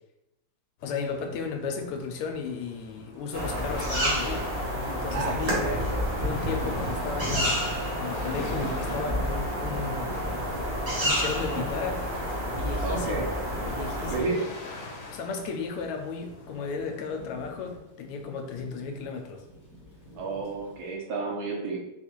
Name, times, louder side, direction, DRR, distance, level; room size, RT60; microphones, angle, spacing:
voice 1, 0.8-4.5 4.8-5.6 6.2-7.7 8.0-10.1 11.0-12.0 12.5-13.3 13.7-14.4 14.9-19.4, left 5 dB, 90° left, 4 dB, 1.6 m, -34 dB
sound 1, 0.8-17.8, left 3 dB, 70° left, 1.4 m, -47 dB
Thunder / Rain, 2.8-20.9, right 1 dB, 15° left, 0.6 m, -42 dB
sound 2, 3.3-14.2, equal, 45° right, 0.4 m, -29 dB
voice 2, 5.1-6.1 12.8-13.3 14.1-14.4 20.1-21.8, right 3 dB, 70° right, -2 dB, 1.7 m, -31 dB
4.1 x 2.4 x 4.4 m, 0.93 s
omnidirectional pair, 2.3 m